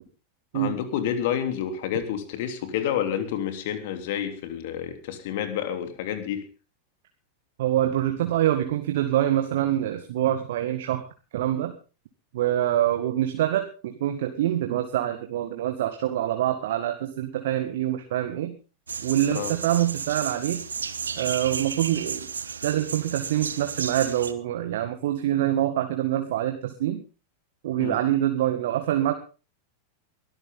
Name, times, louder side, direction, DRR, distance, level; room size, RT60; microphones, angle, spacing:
voice 1, 0.5-6.5 19.3-19.5 27.8-28.0, left 9 dB, 50° left, 8 dB, 3.1 m, -29 dB
voice 2, 7.6-11.1 11.3-11.7 12.3-18.5 19.0-20.6 21.2-22.3 22.6-27.0 27.6-29.1, right 12 dB, 55° right, 6 dB, 1.8 m, -25 dB
sound 1, 18.9-24.3, right 6 dB, 70° right, 1.2 m, -33 dB
22.5 x 13.5 x 3.7 m, 0.34 s
figure-of-eight pair, 90°, 0 cm